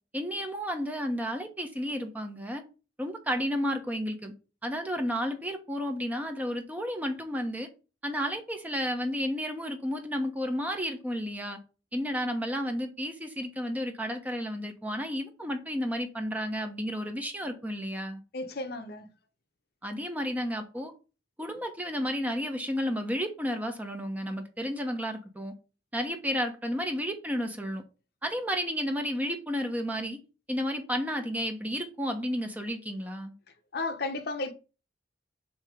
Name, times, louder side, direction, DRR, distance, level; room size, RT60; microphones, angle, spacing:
voice 1, 0.1-2.6 3.0-4.3 4.6-7.7 8.0-11.6 11.9-18.2 19.8-20.9 21.4-25.5 25.9-27.8 28.2-30.2 30.5-33.3, equal, 10° right, 0.9 m, -32 dB
voice 2, 18.3-19.1 33.7-34.5, left 3 dB, 60° left, 0.8 m, -33 dB
7.0 x 2.9 x 5.0 m
head